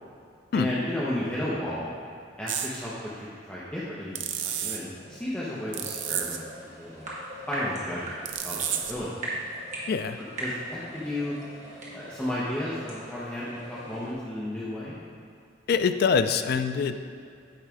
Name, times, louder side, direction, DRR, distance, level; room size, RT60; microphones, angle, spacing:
voice 1, 0.5-1.9 2.4-6.4 6.8-7.1 7.5-9.2 10.2-11.4 11.9-15.0, left 1 dB, 5° left, -9 dB, 0.8 m, -33 dB
sound 1, 2.5-2.7 4.1-4.8 5.7-6.4 8.2-9.0, right 9 dB, 70° right, 0.5 m, -31 dB
sound 2, 4.6-14.1, right 1 dB, 40° right, 1.4 m, -40 dB
voice 2, 9.9-10.2 15.7-17.0, left 5 dB, 55° left, 10 dB, 0.3 m, -24 dB
8.9 x 3.2 x 4.8 m, 2.4 s
head